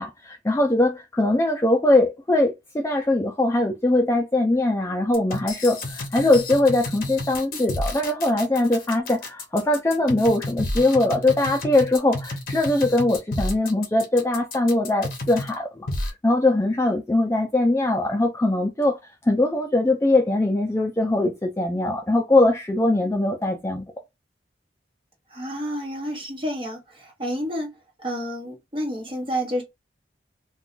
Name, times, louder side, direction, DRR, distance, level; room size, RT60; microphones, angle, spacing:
voice 1, 0.0-23.9, left 2 dB, 15° left, 0.3 m, -21 dB
sound 1, 5.1-15.5 15.9-16.1, left 2 dB, 50° left, 0.7 m, -31 dB
voice 2, 25.3-29.6, equal, 25° right, 0.9 m, -30 dB
2.3 x 2.3 x 3.7 m
head